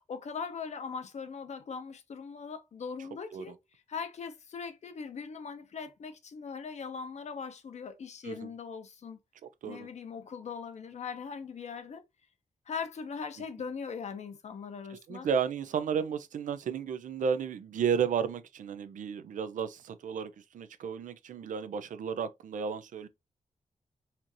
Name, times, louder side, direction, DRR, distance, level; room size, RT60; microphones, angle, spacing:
voice 1, 0.1-3.6 3.9-9.2 9.7-12.0 12.7-15.3, left 5 dB, 60° left, 0.8 m, -40 dB
voice 2, 3.0-3.5 8.2-8.5 9.4-9.9 14.9-23.1, right 7 dB, 90° right, 0.5 m, -33 dB
4.3 x 2.6 x 2.9 m
wide cardioid pair, 115°, 13 cm